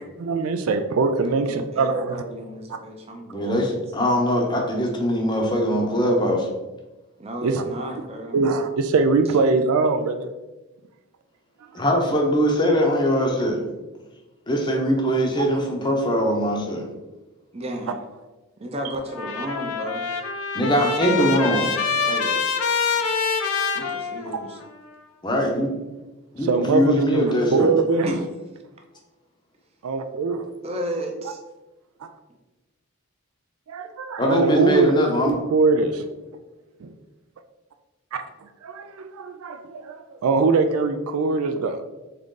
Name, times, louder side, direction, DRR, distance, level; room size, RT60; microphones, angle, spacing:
voice 1, 0.2-2.2 2.7-2.8 7.4-7.9 8.3-10.3 11.8-11.9 15.4-15.5 26.4-28.1 29.8-30.4 33.7-34.9 35.2-36.1 36.8-36.9 38.1-41.8, right 4 dB, 75° right, 8 dB, 0.4 m, -22 dB
voice 2, 1.2-3.7 7.2-8.3 17.5-18.0 18.6-20.0 22.0-22.4 22.9-23.1 23.7-24.6 28.0-28.2 30.6-31.4, equal, 25° right, 2 dB, 0.6 m, -33 dB
voice 3, 3.3-6.5 11.7-13.6 14.5-16.8 20.5-21.7 25.2-25.7 26.3-27.7 34.2-35.3, equal, 20° left, 1 dB, 0.7 m, -21 dB
Trumpet, 19.1-24.7, left 5 dB, 75° left, 0.5 m, -25 dB
3.9 x 3.6 x 3.7 m, 1.1 s
head